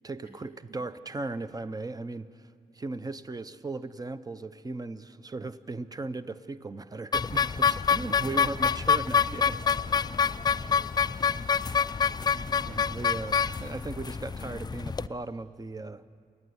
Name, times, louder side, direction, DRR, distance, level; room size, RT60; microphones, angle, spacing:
voice 1, 0.0-2.5 2.7-9.5 12.6-16.0, right 3 dB, 25° right, 13 dB, 0.7 m, -37 dB
Day Clown Horn, 7.1-15.1, left 6 dB, 25° left, 0.4 m, -27 dB
voice 2, 7.6-8.8 9.1-13.0 13.5-13.8, right 1 dB, 70° right, -1 dB, 3.8 m, -53 dB
28.0 x 9.5 x 9.7 m, 2.2 s
cardioid pair, 90°, 17 cm